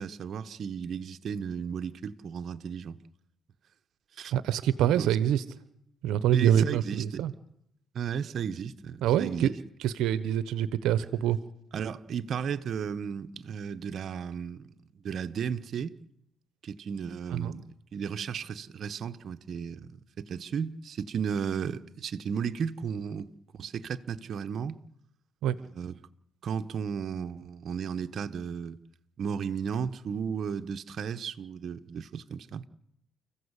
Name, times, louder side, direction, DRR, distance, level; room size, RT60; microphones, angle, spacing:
voice 1, 0.0-3.0 4.2-4.3 4.9-5.1 6.3-7.3 7.9-9.6 11.7-14.6 15.0-16.0 16.6-17.6 17.9-19.9 20.2-24.8 25.7-25.9 26.4-28.8 29.2-32.6, right 7 dB, 60° right, 1.2 m, -34 dB
voice 2, 4.3-5.4 6.0-7.3 9.0-9.5 9.8-11.4 17.3-17.6 25.4-25.6, right 10 dB, 90° right, 1.0 m, -26 dB
30.0 x 15.0 x 8.2 m
cardioid pair, 90°, 0 cm